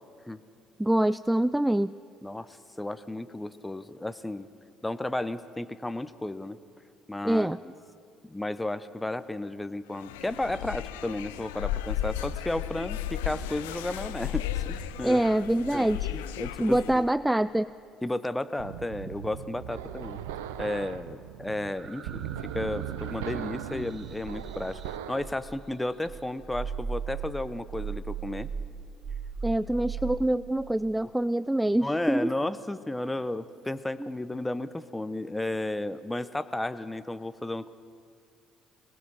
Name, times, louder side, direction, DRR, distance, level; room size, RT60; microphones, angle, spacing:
voice 1, 0.8-1.9 7.2-7.6 15.0-16.0 16.6-17.7 23.7-23.9 29.4-32.3 34.0-34.1, right 1 dB, 5° right, 17 dB, 0.4 m, -25 dB
voice 2, 2.2-4.5 4.8-6.6 7.1-7.7 8.2-15.2 15.7-17.0 18.0-20.2 20.6-22.3 22.5-28.5 31.8-37.7, left 1 dB, 10° left, 13 dB, 0.9 m, -33 dB
sound 1, 9.9-17.1, left 11 dB, 75° left, 0.7 m, -34 dB
sound 2, 18.6-25.3, right 10 dB, 70° right, 0.8 m, -38 dB
sound 3, 21.8-25.7 26.0-30.2, right 6 dB, 45° right, 1.3 m, -38 dB
26.5 x 18.5 x 5.6 m, 2.4 s
figure-of-eight pair, 55°, 0 cm